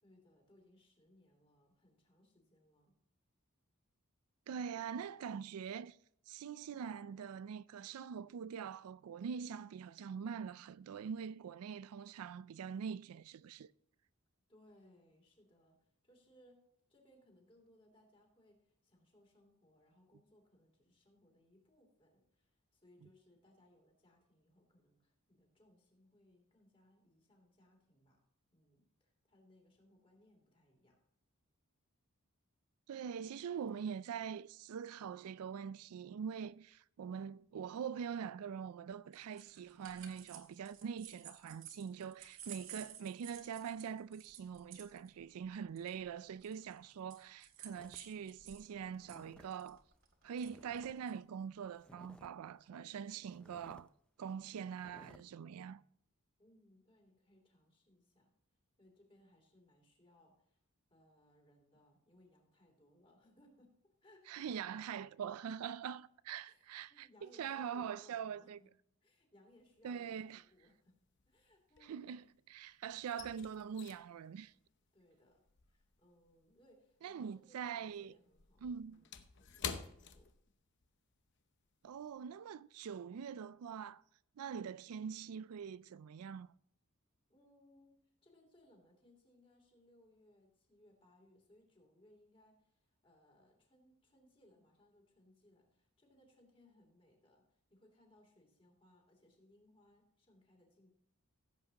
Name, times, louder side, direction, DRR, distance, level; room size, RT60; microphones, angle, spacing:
voice 1, 0.0-2.9 14.5-16.6 16.9-28.2 28.5-31.0 56.4-58.3 58.8-60.6 60.9-63.7 64.0-64.4 66.5-68.7 69.0-70.9 71.3-72.0 74.9-75.4 75.7-80.3 87.3-87.9 88.2-100.9, left 1 dB, 25° left, 2.8 m, -67 dB
voice 2, 4.5-6.0 6.3-13.7 32.9-49.8 50.2-53.9 54.2-55.8 64.3-68.6 69.8-70.4 71.8-74.5 77.0-78.1 78.6-79.0 81.8-84.0 84.4-86.5, right 7 dB, 80° right, 0.4 m, -44 dB
sound 1, 39.1-48.6 48.9-51.2, right 9 dB, 60° right, 1.8 m, -54 dB
sound 2, 47.7-51.0 51.2-52.5 52.9-53.0 53.3-53.9 54.3-54.4 54.7-55.2, left 1 dB, 5° left, 0.4 m, -61 dB
sound 3, 69.6-70.2 70.4-72.4 72.7-77.4 77.7-81.0 81.3-81.5 81.9-82.2, left 7 dB, 50° left, 0.8 m, -49 dB
16.0 x 8.1 x 2.9 m
head